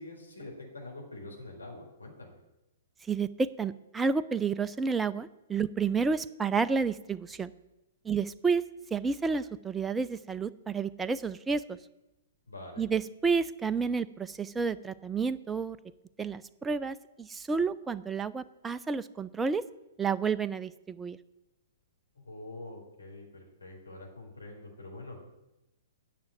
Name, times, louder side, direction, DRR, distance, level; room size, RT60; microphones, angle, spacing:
voice 1, 0.0-2.4 12.5-12.9 22.1-25.2, left 2 dB, 80° left, -1 dB, 4.4 m, -45 dB
voice 2, 3.1-7.5 8.0-8.6 8.9-11.8 12.8-15.8 16.2-19.6 20.0-21.2, right 5 dB, 10° right, 12 dB, 0.4 m, -30 dB
9.5 x 6.9 x 9.0 m, 0.95 s
figure-of-eight pair, 115°, 0 cm